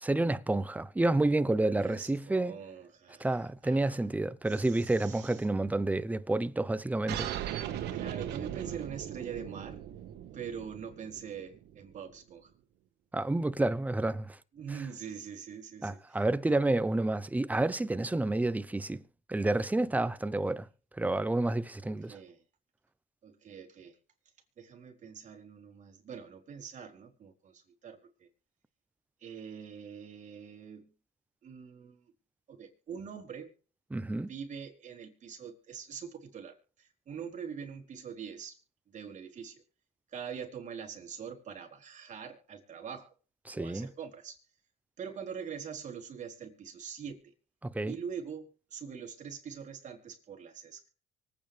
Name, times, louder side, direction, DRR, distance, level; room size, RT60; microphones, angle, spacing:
voice 1, 0.0-2.6 3.2-7.3 13.1-14.4 15.8-19.0 19.3-20.7 20.9-22.2 33.9-34.3 43.5-43.9 47.6-48.0, right 2 dB, 10° right, 0.7 m, -29 dB
voice 2, 1.6-3.4 3.6-4.0 4.5-5.4 7.9-9.8 10.3-12.5 14.6-16.0 16.4-16.6 21.8-22.4 23.2-24.0 24.6-28.3 29.2-30.9 31.4-32.0 32.5-33.5 34.3-38.6 38.9-39.6 40.1-43.1 43.5-44.4 45.0-47.2 47.9-50.9, right 7 dB, 45° right, 4.0 m, -44 dB
sound 1, 7.1-12.1, right 11 dB, 80° right, 1.6 m, -38 dB
24.5 x 8.9 x 3.4 m
cardioid pair, 110°, 17 cm